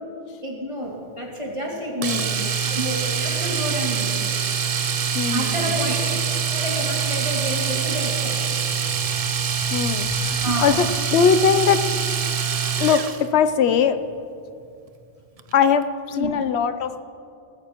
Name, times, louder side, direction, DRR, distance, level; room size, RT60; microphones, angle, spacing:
voice 1, 0.4-2.3 2.6-4.2 5.3-6.2 6.5-8.4 10.4-10.8 16.1-16.3, right 1 dB, 30° right, -2 dB, 2.3 m, -29 dB
voice 2, 2.0-2.5 3.5-3.6 5.1-5.8 9.7-11.9 12.8-14.0 15.5-17.1, left 7 dB, 80° left, 11 dB, 0.9 m, -21 dB
Domestic sounds home sounds, 2.0-13.3 15.4-15.5 15.8-15.9, right 7 dB, 45° right, 0.5 m, -24 dB
18.5 x 15.0 x 3.0 m, 2.5 s
omnidirectional pair, 1.1 m